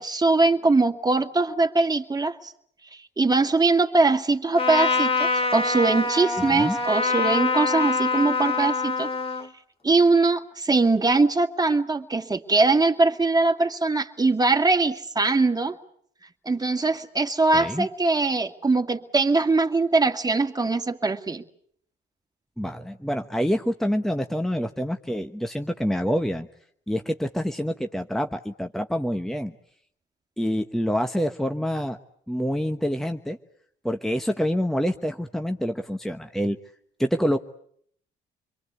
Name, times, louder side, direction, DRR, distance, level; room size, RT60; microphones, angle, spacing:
voice 1, 0.0-2.5 3.2-9.1 9.8-15.8 16.5-21.4, right 3 dB, 20° right, 5 dB, 2.2 m, -22 dB
Trumpet, 4.5-9.5, left 4 dB, 30° left, 2.4 m, -25 dB
voice 2, 6.4-6.8 17.5-17.9 22.6-26.5 26.9-29.5 30.4-32.0 32.3-33.4 33.8-36.6 37.0-37.4, equal, ahead, 6 dB, 1.2 m, -26 dB
27.0 x 23.0 x 8.2 m, 0.66 s
cardioid pair, 90°, 20 cm